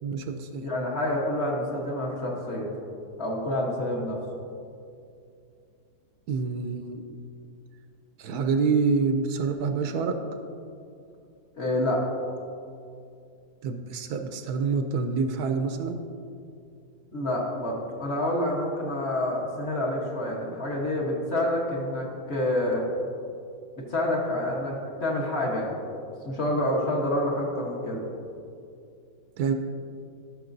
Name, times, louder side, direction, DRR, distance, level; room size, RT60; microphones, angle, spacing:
voice 1, 0.0-0.7 6.3-7.0 8.2-10.2 13.6-16.0 29.4-29.5, right 5 dB, 75° right, 6 dB, 1.1 m, -27 dB
voice 2, 0.6-2.7 3.2-4.2 11.5-12.0 17.1-22.9 23.9-25.8 26.2-28.1, left 1 dB, 45° left, -3 dB, 1.3 m, -28 dB
12.5 x 6.3 x 2.6 m, 2.4 s
omnidirectional pair, 1.7 m